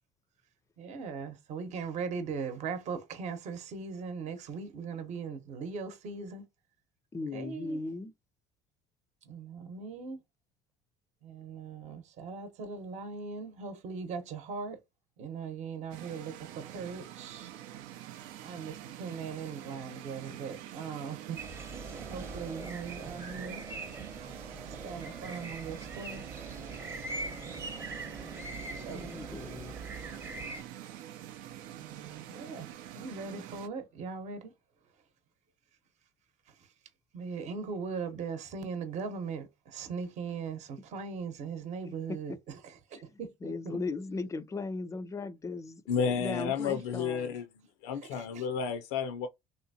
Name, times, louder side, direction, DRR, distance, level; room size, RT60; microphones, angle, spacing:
voice 1, 0.8-6.4 7.3-7.8 9.2-10.2 11.2-14.8 15.2-17.5 18.4-21.4 22.1-23.6 24.7-26.3 26.9-27.6 28.7-29.1 31.8-32.7 32.9-34.5 36.5-36.7 37.1-43.8 46.3-46.5 48.0-48.5, right 5 dB, 55° right, 0.9 m, -40 dB
voice 2, 7.1-8.1 28.9-29.7 41.9-42.4 43.1-45.8 46.1-47.3, left 3 dB, 20° left, 0.4 m, -38 dB
sound 1, 15.9-33.7, right 12 dB, 75° right, 0.5 m, -46 dB
sound 2, 21.4-30.6, right 2 dB, 20° right, 0.8 m, -42 dB
voice 3, 45.9-47.5 47.8-49.3, left 6 dB, 80° left, 0.5 m, -31 dB
3.3 x 2.8 x 2.7 m
supercardioid pair, 95°, 14 cm